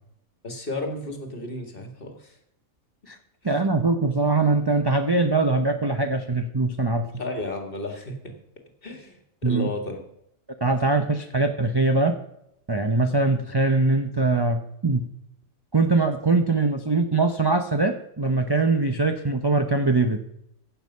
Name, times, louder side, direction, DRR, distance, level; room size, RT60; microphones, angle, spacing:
voice 1, 0.4-2.4 3.4-3.5 7.1-8.3 8.8-10.0, left 2 dB, 40° left, 5 dB, 1.9 m, -33 dB
voice 2, 3.4-7.1 9.4-9.7 10.6-12.2 12.7-15.1 15.7-20.2, right 3 dB, 25° right, 5 dB, 0.6 m, -22 dB
15.5 x 7.0 x 5.5 m, 0.78 s
omnidirectional pair, 1.4 m